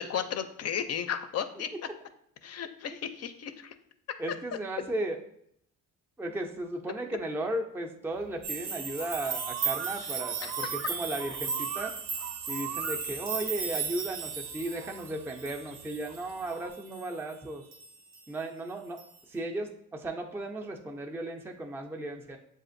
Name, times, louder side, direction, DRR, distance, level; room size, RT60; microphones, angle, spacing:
voice 1, 0.0-1.7 2.4-3.7 10.4-10.5, left 8 dB, 50° left, 9 dB, 0.4 m, -34 dB
voice 2, 4.2-5.2 6.2-11.9 12.5-17.6 18.3-19.0 19.3-22.4, right 1 dB, 5° right, 3 dB, 0.4 m, -35 dB
sound 1, 8.1-16.7, right 9 dB, 65° right, 0.5 m, -43 dB
sound 2, 8.4-17.4 17.7-18.3 19.0-19.1, right 5 dB, 80° right, 0.9 m, -36 dB
7.3 x 2.5 x 2.5 m, 0.70 s
cardioid pair, 85°, 33 cm